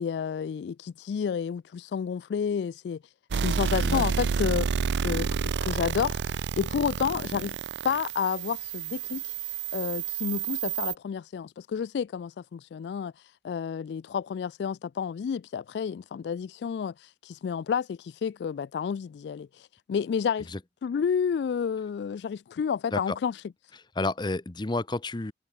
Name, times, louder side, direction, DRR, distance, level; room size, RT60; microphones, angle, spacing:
voice 1, 0.0-3.0 3.4-4.7 5.0-5.3 5.6-7.6 7.8-9.3 9.7-13.1 13.4-20.5 20.8-23.4, left 7 dB, 75° left, 0.3 m, -30 dB
sound 1, 3.3-10.9, right 6 dB, 80° right, 0.4 m, -30 dB
voice 2, 24.0-25.3, left 2 dB, 25° left, 0.7 m, -30 dB
head